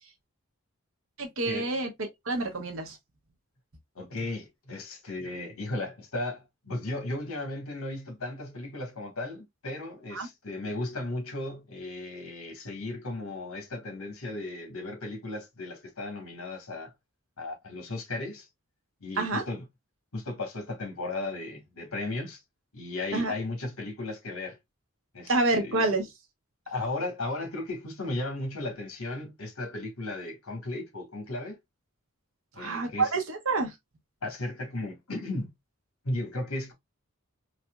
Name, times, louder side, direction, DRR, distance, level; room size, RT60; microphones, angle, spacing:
voice 1, 1.2-3.0 10.1-10.3 19.2-19.4 23.1-23.3 25.3-26.1 32.6-33.7, right 3 dB, 70° right, 1.0 m, -28 dB
voice 2, 3.9-16.9 17.4-18.5 19.0-19.7 20.1-22.4 22.7-24.6 25.1-25.9 26.7-31.6 32.5-33.1 34.2-35.5 36.0-36.7, left 2 dB, 80° left, 1.4 m, -35 dB
4.1 x 2.5 x 2.2 m
head